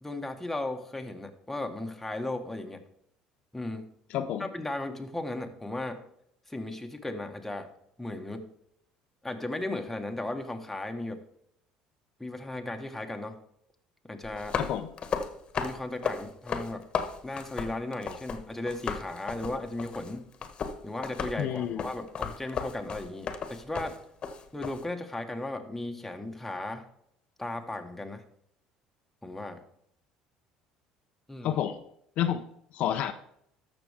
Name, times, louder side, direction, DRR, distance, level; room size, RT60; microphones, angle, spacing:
voice 1, 0.0-2.8 3.5-3.8 4.4-6.0 6.5-7.7 8.0-8.5 9.2-11.2 12.2-13.4 14.1-14.6 15.6-16.8 17.2-20.2 20.8-24.0 24.5-26.8 27.4-28.2 29.2-29.6 31.3-31.6, left 2 dB, 10° left, 4 dB, 1.4 m, -36 dB
voice 2, 4.1-4.5 14.6-14.9 21.4-21.9 31.4-31.8 32.2-32.4 32.7-33.1, left 10 dB, 65° left, 8 dB, 0.6 m, -29 dB
sound 1, 14.2-18.4 18.7-24.8, left 6 dB, 45° left, 1.3 m, -35 dB
13.5 x 6.1 x 3.6 m, 0.72 s
supercardioid pair, 85°, 2 cm